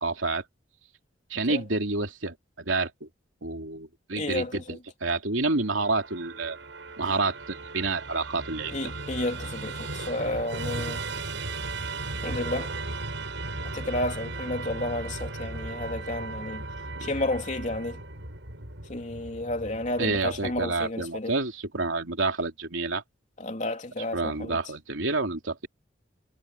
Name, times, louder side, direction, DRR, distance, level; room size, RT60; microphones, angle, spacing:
voice 1, 0.0-0.4 1.3-3.1 3.4-6.6 7.0-8.8 17.0-17.1 20.0-23.0 24.1-25.7, right 3 dB, 85° right, 3.0 m, -29 dB
voice 2, 4.2-4.8 8.7-11.0 12.2-12.7 13.6-16.6 17.0-18.0 18.9-21.3 23.4-24.6, left 1 dB, 40° left, 3.3 m, -31 dB
Musical instrument, 5.6-20.9, right 2 dB, 70° right, 7.0 m, -36 dB
head